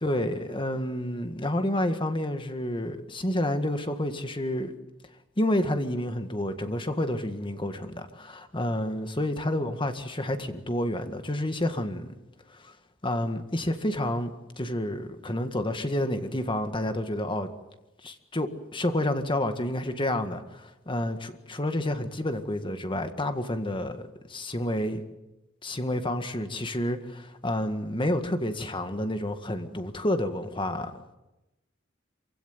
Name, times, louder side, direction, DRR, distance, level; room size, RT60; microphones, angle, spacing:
voice 1, 0.0-4.7 5.4-12.1 12.5-12.7 13.0-17.5 18.0-25.0 25.6-31.2, left 1 dB, 25° left, 1.9 m, -29 dB
27.5 x 16.5 x 9.4 m
head